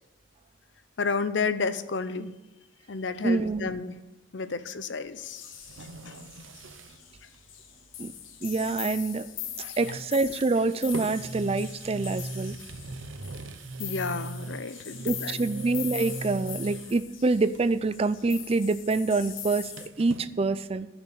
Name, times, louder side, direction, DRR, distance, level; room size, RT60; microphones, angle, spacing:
voice 1, 1.0-2.3 2.9-4.0 4.3-5.5 6.1-6.2 9.6-9.7 13.8-15.4, left 4 dB, 65° left, 13 dB, 0.7 m, -31 dB
voice 2, 3.2-3.7 8.0-8.1 8.4-9.3 9.6-12.6 15.0-19.7 20.0-20.9, right 3 dB, 30° right, 15 dB, 0.4 m, -26 dB
sound 1, 5.1-7.0 7.3-7.4 9.1-9.4 9.7-17.1 17.5-17.9 18.1-20.3, right 2 dB, 80° right, 0.7 m, -40 dB
sound 2, 5.2-19.9, left 10 dB, 85° left, 1.0 m, -42 dB
10.5 x 6.0 x 8.5 m, 1.0 s
head